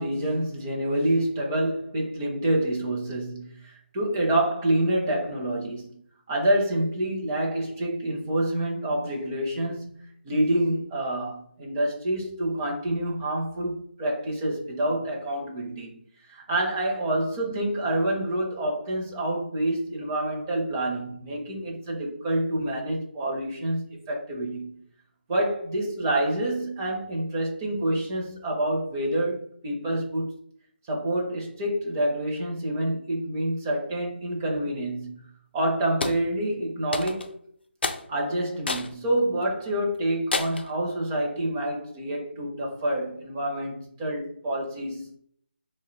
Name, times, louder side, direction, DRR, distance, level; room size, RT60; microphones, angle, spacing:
voice 1, 0.0-6.0 6.3-16.0 16.3-24.8 25.3-30.3 30.9-35.3 35.5-37.3 38.1-45.1, right 1 dB, 15° right, 0.6 m, -27 dB
sound 1, 36.0-36.2 36.9-37.3 37.8-38.0 38.7-38.9 39.4-39.5 40.3-40.7, left 3 dB, 60° left, 0.5 m, -29 dB
2.6 x 2.1 x 3.8 m
figure-of-eight pair, 165°, 6 cm